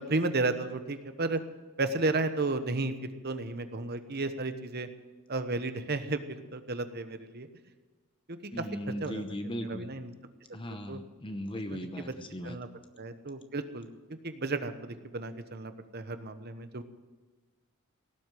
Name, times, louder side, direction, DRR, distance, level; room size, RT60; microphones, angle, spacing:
voice 1, 0.0-1.4 1.8-2.9 3.2-4.9 5.3-7.5 8.3-8.6 9.0-9.2 9.6-10.1 10.9-11.0 11.7-11.8 12.4-12.7 13.0-13.9 14.2-16.8, right 3 dB, 45° right, 10 dB, 1.1 m, -33 dB
voice 2, 8.5-9.9 10.5-12.6, equal, 25° left, 8 dB, 0.8 m, -38 dB
17.5 x 7.9 x 9.4 m, 1.3 s
head